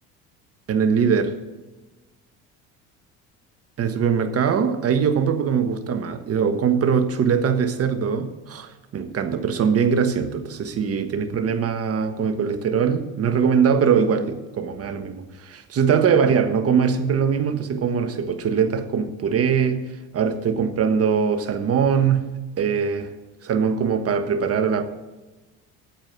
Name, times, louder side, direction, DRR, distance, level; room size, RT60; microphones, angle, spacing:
voice 1, 0.7-1.4 3.8-19.8 20.1-22.3 22.6-23.1 23.4-24.8, right 6 dB, 45° right, 9 dB, 1.4 m, -22 dB
8.9 x 7.5 x 8.8 m, 1.1 s
supercardioid pair, 85°, 34 cm